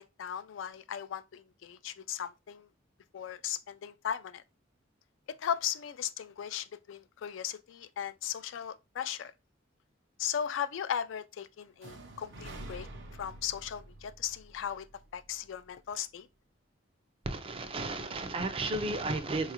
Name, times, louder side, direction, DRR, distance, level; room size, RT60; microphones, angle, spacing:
voice 1, 0.0-2.7 3.1-4.4 5.4-9.3 10.2-12.9 13.2-14.9 15.1-16.3, left 9 dB, 70° left, 0.3 m, -37 dB
sound 1, 11.8-15.7, right 1 dB, 65° right, 0.7 m, -48 dB
voice 2, 17.3-19.5, right 2 dB, 30° right, 0.4 m, -33 dB
4.0 x 2.3 x 2.8 m
head